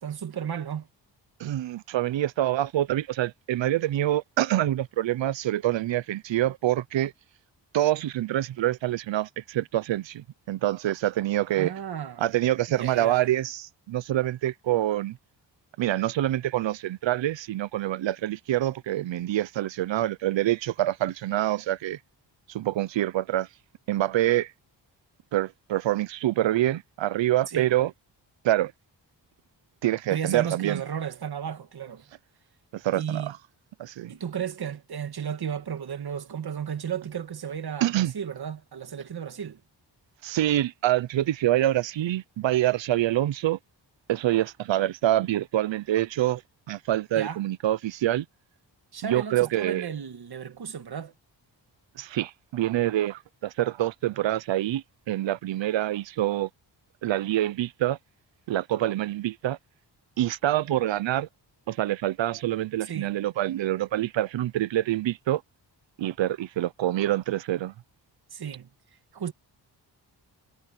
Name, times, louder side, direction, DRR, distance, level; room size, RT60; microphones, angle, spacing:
voice 1, 0.0-0.9 11.6-12.3 12.7-13.2 27.5-27.7 30.1-32.0 32.9-33.3 34.1-39.6 47.2-47.4 48.9-51.1 62.8-63.1 68.3-68.7 69.1-69.3, right 8 dB, 60° right, 1.9 m, -34 dB
voice 2, 1.4-7.1 7.7-11.7 12.2-15.2 15.8-22.0 22.5-23.5 23.9-24.5 25.3-27.9 28.4-28.7 29.8-30.8 32.7-33.4 33.8-34.1 37.8-38.1 40.2-43.6 44.1-46.4 46.7-48.3 49.0-49.9 52.0-56.5 57.0-58.0 58.5-59.6 60.2-61.3 61.7-65.4 66.0-67.7, right 13 dB, 85° right, 0.7 m, -26 dB
wide cardioid pair, 110°, 43 cm